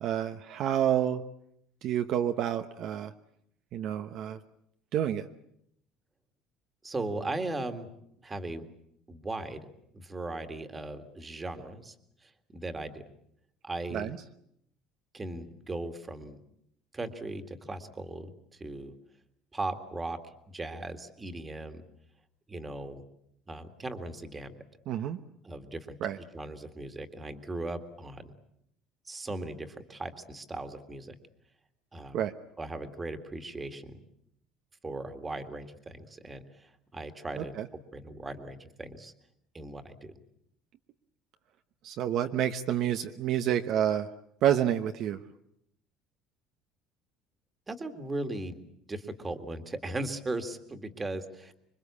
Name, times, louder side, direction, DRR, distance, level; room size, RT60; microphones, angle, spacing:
voice 1, 0.0-1.2 1.8-3.1 3.7-4.4 4.9-5.2 13.9-14.2 24.9-25.2 26.0-26.2 32.1-32.3 37.4-37.7 41.8-44.1 44.4-45.2, right 10 dB, 50° right, 7 dB, 1.0 m, -28 dB
voice 2, 6.8-7.9 8.2-8.7 9.1-9.7 9.9-12.0 12.2-13.0 13.6-14.1 15.1-16.4 16.9-18.9 19.5-21.8 22.5-23.0 23.5-24.5 25.4-28.3 29.1-31.1 31.9-32.2 32.6-34.0 34.8-37.6 37.9-39.1 39.5-40.1 47.7-48.6 48.9-51.5, right 2 dB, 15° right, 8 dB, 2.0 m, -38 dB
26.5 x 24.0 x 8.5 m, 0.75 s
cardioid pair, 160°, 0 cm